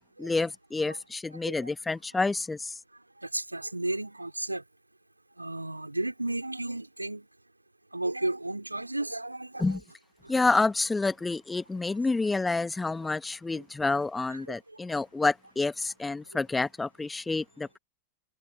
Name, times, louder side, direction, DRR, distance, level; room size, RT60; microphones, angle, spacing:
voice 1, 0.2-2.8 9.6-9.8 10.3-17.8, left 3 dB, 10° left, 1.3 m, -28 dB
voice 2, 3.3-4.6 5.4-7.2 7.9-9.8 13.8-14.0 14.3-14.4, right 2 dB, 85° right, 2.9 m, -33 dB
figure-of-eight pair, 90°, 0 cm